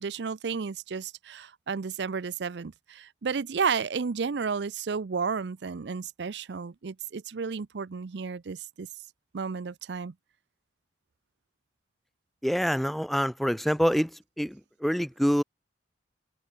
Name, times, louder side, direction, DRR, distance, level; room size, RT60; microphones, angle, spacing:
voice 1, 0.0-8.9 9.3-10.1, right 5 dB, 65° right, 0.5 m, -32 dB
voice 2, 12.4-14.1 14.4-14.6 14.8-15.4, equal, ahead, 0.6 m, -25 dB
head